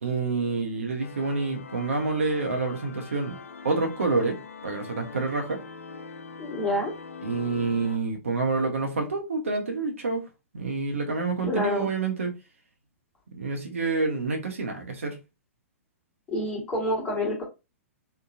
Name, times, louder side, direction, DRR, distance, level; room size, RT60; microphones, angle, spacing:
voice 1, 0.0-3.4 3.6-4.4 4.6-5.6 7.2-10.3 10.5-12.3 13.3-15.2, right 3 dB, 70° right, 0.9 m, -28 dB
sound 1, 1.0-8.0, left 5 dB, 75° left, 0.3 m, -43 dB
voice 2, 6.4-6.9 11.4-11.9 16.3-17.4, left 1 dB, 15° left, 1.1 m, -27 dB
3.1 x 2.3 x 2.4 m
figure-of-eight pair, 110°, 8 cm